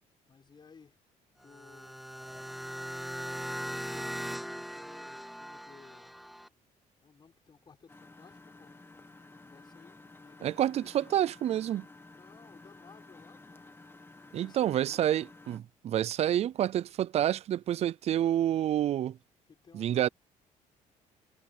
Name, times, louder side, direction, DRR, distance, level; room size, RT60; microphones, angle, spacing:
voice 1, 0.2-1.0 1.4-2.0 3.6-6.2 7.0-8.7 9.4-11.2 12.1-13.6 14.3-15.1 19.5-20.1, left 5 dB, 35° left, 5.5 m, -57 dB
sound 1, 1.4-6.5, equal, ahead, 0.6 m, -39 dB
Engine, 7.9-15.6, left 2 dB, 15° left, 1.6 m, -53 dB
voice 2, 10.4-11.9 14.3-19.2 19.7-20.1, right 11 dB, 50° right, 0.4 m, -28 dB
cardioid pair, 120°, 14 cm